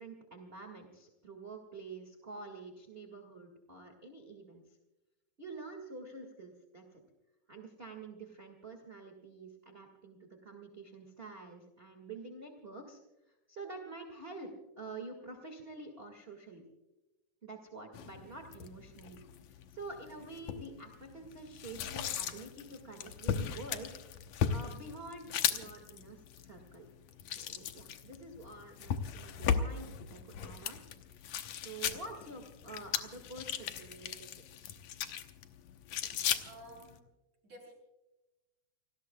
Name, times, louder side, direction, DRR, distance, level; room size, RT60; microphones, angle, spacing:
voice 1, 0.0-4.6 5.4-7.0 7.5-13.0 13.3-16.6 17.4-19.2 19.5-23.9 24.2-26.9 27.2-30.8 31.5-34.3 34.5-34.8, right 3 dB, 25° right, 3 dB, 1.6 m, -48 dB
sound 1, 17.9-37.0, left 8 dB, 70° left, 2.1 m, -38 dB
voice 2, 35.9-37.1 37.4-37.7, right 1 dB, 65° right, -3 dB, 8.7 m, -54 dB
29.5 x 19.5 x 2.3 m, 1.0 s
omnidirectional pair, 3.5 m